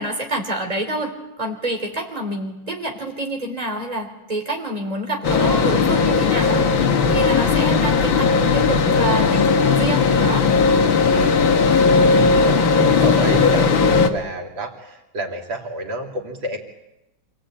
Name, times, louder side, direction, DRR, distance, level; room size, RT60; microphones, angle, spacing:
voice 1, 0.0-6.8 7.1-10.5 12.1-12.4, right 1 dB, 20° right, 1 dB, 3.6 m, -28 dB
sound 1, 5.2-14.1, left 5 dB, 90° left, 2.2 m, -17 dB
voice 2, 12.4-16.6, equal, 90° right, 2 dB, 3.6 m, -27 dB
27.0 x 18.0 x 8.9 m, 0.99 s
omnidirectional pair, 2.0 m